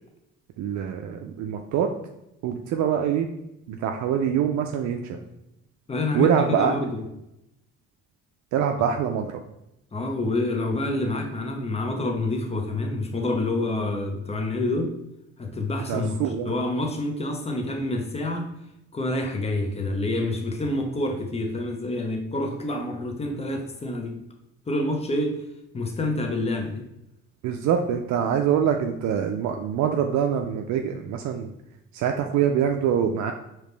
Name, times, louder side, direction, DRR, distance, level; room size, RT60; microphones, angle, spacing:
voice 1, 0.6-1.9 2.4-3.3 3.7-5.2 6.1-6.7 8.5-9.4 15.9-16.5 27.4-31.5 31.9-33.3, right 8 dB, 70° right, 4 dB, 0.5 m, -24 dB
voice 2, 5.9-7.0 9.9-14.9 15.4-18.5 18.9-24.1 24.7-25.3 25.7-26.9, left 2 dB, 20° left, 3 dB, 0.8 m, -27 dB
4.9 x 3.0 x 3.2 m, 0.86 s
cardioid pair, 95°, 30 cm